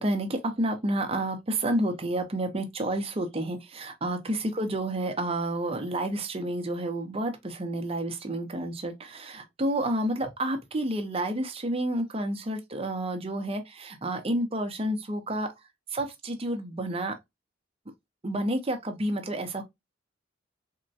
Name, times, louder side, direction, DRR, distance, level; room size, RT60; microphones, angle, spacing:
voice 1, 0.0-15.5 15.9-17.1 18.2-19.6, right 1 dB, 30° right, 0.6 m, -30 dB
3.6 x 2.1 x 2.6 m
head